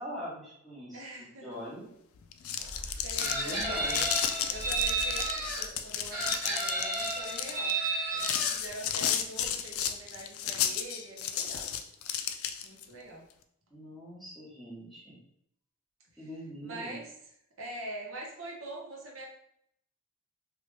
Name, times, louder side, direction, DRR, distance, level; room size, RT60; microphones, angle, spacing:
voice 1, 0.0-1.0 1.4-1.8 3.2-4.1 13.7-15.2 16.2-16.9, equal, ahead, -9 dB, 1.0 m, -42 dB
voice 2, 0.9-1.6 2.4-4.1 4.5-7.8 8.1-11.7 12.6-13.3 16.1-16.3 16.6-17.1 17.6-19.3, right 2 dB, 70° right, -2 dB, 0.8 m, -44 dB
sound 1, 2.2-12.8, left 9 dB, 85° left, 0.3 m, -33 dB
sound 2, 2.6-7.2 7.4-7.5, equal, 45° left, 0.7 m, -46 dB
Chicken rooster, 3.2-5.6 6.1-8.5, right 3 dB, 20° right, 1.3 m, -32 dB
3.0 x 2.4 x 3.1 m, 0.72 s
head